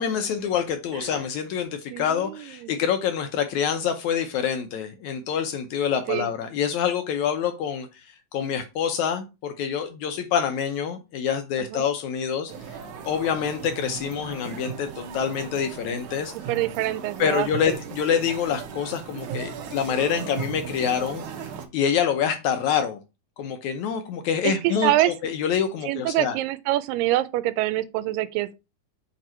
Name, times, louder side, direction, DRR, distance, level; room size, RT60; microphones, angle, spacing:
voice 1, 0.0-7.9 8.3-12.5 13.1-16.3 17.2-21.3 21.7-23.0 23.4-26.4, left 8 dB, 75° left, 1.8 m, -26 dB
voice 2, 1.9-2.7 6.1-6.3 11.6-11.9 16.3-17.8 24.4-25.1 25.9-28.5, right 15 dB, 90° right, 2.3 m, -26 dB
sound 1, 12.5-21.7, right 6 dB, 70° right, 2.3 m, -37 dB
7.6 x 3.6 x 4.3 m
omnidirectional pair, 3.9 m